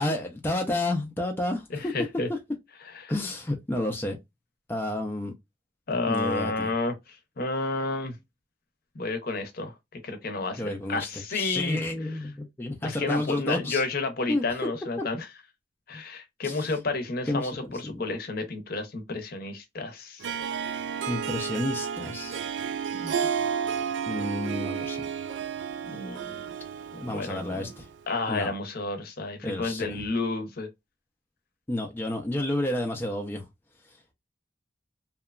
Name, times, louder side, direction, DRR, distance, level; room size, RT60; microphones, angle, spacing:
voice 1, 0.0-1.9 2.3-2.4 3.1-4.2 4.7-5.3 6.1-6.7 10.6-13.8 14.3-14.4 16.4-16.8 17.3-18.0 21.1-22.4 24.1-25.0 27.0-27.9 28.3-28.5 29.4-30.0 31.7-33.5, left 1 dB, 10° left, 0.4 m, -30 dB
voice 2, 1.7-2.3 3.0-3.1 5.9-8.2 8.9-11.8 12.8-15.3 15.9-20.4 23.0-23.1 25.9-26.3 26.9-27.7 28.1-30.7, left 3 dB, 55° left, 0.7 m, -31 dB
Harp, 20.2-27.9, right 7 dB, 65° right, 0.3 m, -32 dB
2.8 x 2.1 x 2.3 m
head